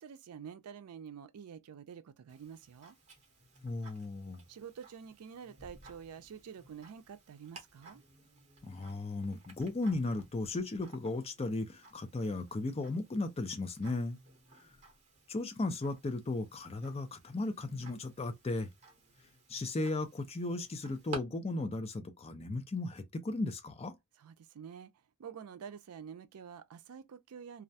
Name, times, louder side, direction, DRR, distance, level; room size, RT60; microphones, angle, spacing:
voice 1, 0.0-3.0 4.5-8.0 24.2-24.9 25.2-27.6, right 7 dB, 80° right, 0.4 m, -48 dB
Tick-tock, 2.3-21.2, right 3 dB, 30° right, 0.9 m, -55 dB
voice 2, 3.6-4.4 8.6-14.2 15.3-18.7 19.5-23.9, left 2 dB, 30° left, 0.4 m, -36 dB
2.3 x 2.1 x 2.6 m
head